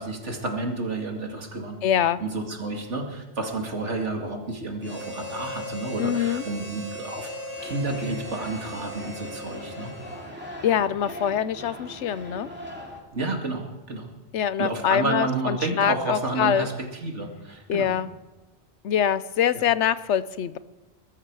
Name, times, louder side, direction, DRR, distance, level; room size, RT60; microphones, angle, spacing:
voice 1, 0.0-1.8 2.2-7.3 7.6-9.9 13.1-14.1 14.6-17.9, right 2 dB, 85° right, 2 dB, 2.6 m, -30 dB
voice 2, 1.8-2.2 6.0-6.4 10.6-12.5 14.3-16.7 17.7-18.1 18.8-20.6, left 9 dB, 85° left, 15 dB, 1.0 m, -24 dB
Harmonica, 4.8-10.6, equal, 30° left, 7.5 m, -38 dB
sound 1, 7.6-13.0, equal, 10° right, 2.6 m, -41 dB
21.0 x 13.5 x 4.8 m, 1.2 s
omnidirectional pair, 1.2 m